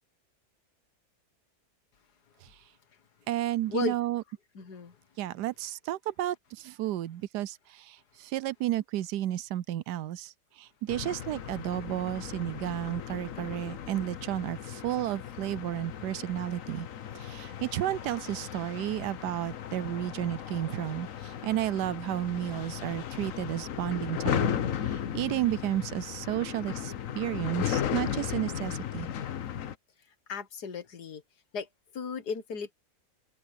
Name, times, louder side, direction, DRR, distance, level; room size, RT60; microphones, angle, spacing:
voice 1, 3.3-4.2 5.2-16.9 17.1-24.5 24.8-29.1, right 13 dB, 80° right, 1.2 m, -32 dB
voice 2, 4.6-5.0 30.3-31.2 31.5-31.7 31.9-32.7, left 5 dB, 75° left, 2.1 m, -35 dB
sound 1, 10.9-29.7, left 9 dB, 55° left, 1.2 m, -36 dB
open air
omnidirectional pair, 1.8 m